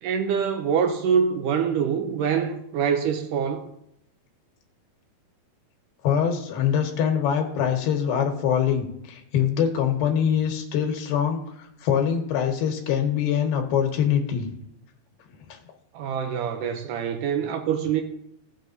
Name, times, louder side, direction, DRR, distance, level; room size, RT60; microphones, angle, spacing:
voice 1, 0.0-3.7 15.9-18.0, right 7 dB, 80° right, 1.9 m, -25 dB
voice 2, 6.0-14.5 15.3-15.6, left 8 dB, 80° left, 2.9 m, -24 dB
17.0 x 6.4 x 2.7 m
omnidirectional pair, 4.3 m